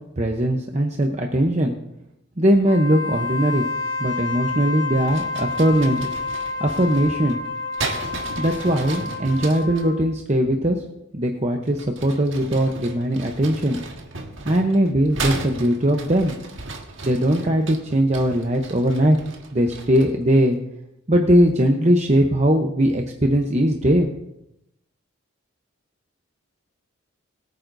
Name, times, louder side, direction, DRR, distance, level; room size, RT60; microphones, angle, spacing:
voice 1, 0.2-1.7 2.4-3.7 4.0-6.1 6.6-7.4 8.4-10.8 11.1-13.8 14.4-16.4 17.0-19.2 19.5-20.6 21.1-24.1, right 1 dB, 30° right, 2 dB, 0.8 m, -20 dB
Wind instrument woodwind instrument, 2.6-10.1, left 4 dB, 85° left, 1.2 m, -29 dB
sound 1, 5.0-9.9 11.6-20.2, right 3 dB, 65° right, 1.6 m, -35 dB
21.5 x 9.3 x 2.7 m, 0.84 s
head